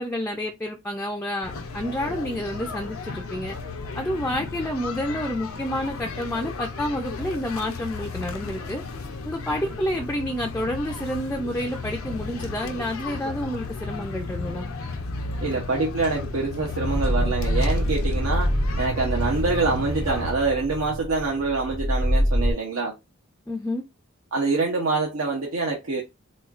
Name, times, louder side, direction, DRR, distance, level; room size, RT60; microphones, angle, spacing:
voice 1, 0.0-3.6 3.9-8.8 9.2-14.7 23.5-23.8, equal, 10° left, 0.3 m, -29 dB
sound 1, 1.4-20.3, left 3 dB, 85° left, 0.6 m, -34 dB
voice 2, 15.4-18.5 18.8-22.9 24.3-26.0, right 3 dB, 80° right, 0.8 m, -25 dB
sound 2, 16.8-22.5, equal, 30° right, 0.6 m, -25 dB
4.2 x 2.3 x 2.4 m
head